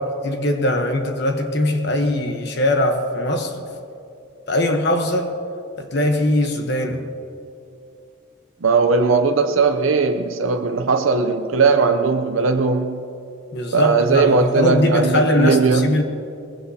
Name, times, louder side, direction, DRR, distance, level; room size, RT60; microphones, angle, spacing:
voice 1, 0.0-3.7 4.5-5.3 5.8-7.0 13.5-16.0, left 1 dB, 55° left, 4 dB, 1.0 m, -21 dB
voice 2, 8.6-13.0 13.7-16.0, right 4 dB, 75° right, 6 dB, 0.6 m, -18 dB
21.0 x 16.0 x 2.8 m, 2.6 s
head